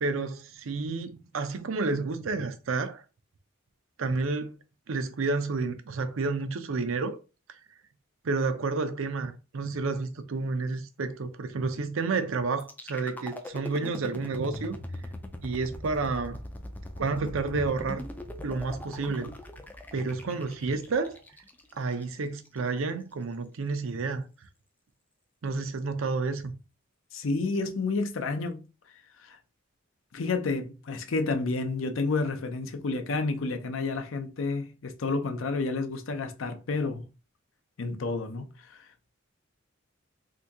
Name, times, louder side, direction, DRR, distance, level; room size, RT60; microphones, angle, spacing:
voice 1, 0.0-3.0 4.0-4.6 4.9-7.2 8.2-14.8 15.4-16.4 17.0-18.0 18.4-19.3 19.9-21.2 21.7-24.3 25.4-26.5, right 3 dB, 75° right, 0.5 m, -30 dB
sound 1, 12.6-22.6, left 1 dB, 10° left, 0.3 m, -41 dB
voice 2, 27.1-28.6 29.2-29.4 30.1-37.1 37.8-39.1, left 3 dB, 70° left, 0.6 m, -30 dB
2.8 x 2.7 x 3.5 m
head